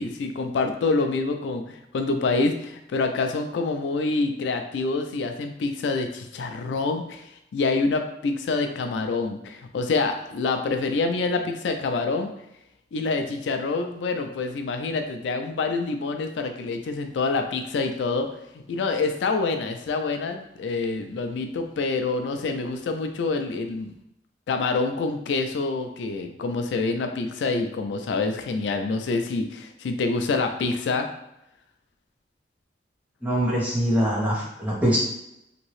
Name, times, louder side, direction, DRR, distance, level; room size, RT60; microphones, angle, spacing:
voice 1, 0.0-12.3 12.9-18.3 18.5-23.9 24.5-31.1, left 3 dB, 85° left, 6 dB, 0.4 m, -26 dB
voice 2, 33.2-35.0, equal, 10° right, -7 dB, 1.0 m, -23 dB
2.9 x 2.7 x 3.0 m, 0.82 s
head